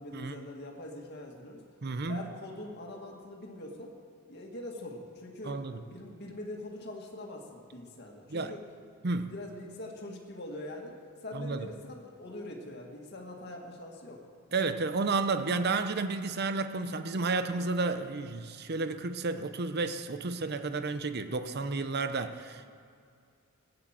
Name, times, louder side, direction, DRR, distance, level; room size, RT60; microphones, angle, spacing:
voice 1, 0.0-1.6 2.1-3.9 4.3-8.6 9.3-11.0 11.2-14.2, left 1 dB, 50° left, 0 dB, 1.9 m, -43 dB
voice 2, 1.8-2.2 5.5-5.8 8.3-8.5 9.0-9.3 11.3-11.7 14.5-22.8, right 3 dB, 50° right, 10 dB, 0.7 m, -31 dB
15.5 x 9.6 x 7.4 m, 2.3 s
head